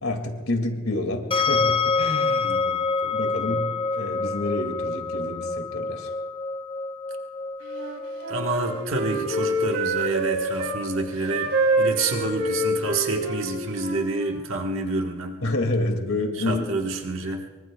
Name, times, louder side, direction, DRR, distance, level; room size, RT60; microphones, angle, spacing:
voice 1, 0.0-2.6 3.1-6.1 15.4-16.6, left 2 dB, 80° left, 4 dB, 2.3 m, -28 dB
sound 1, 1.3-14.3, left 4 dB, 25° left, 0.7 m, -29 dB
voice 2, 2.4-3.2 8.3-15.4 16.4-17.5, right 3 dB, 65° right, 2 dB, 1.4 m, -28 dB
Wind instrument woodwind instrument, 7.7-10.8 11.3-14.4, right 1 dB, 90° right, 3.4 m, -26 dB
24.0 x 24.0 x 2.3 m, 1.4 s
head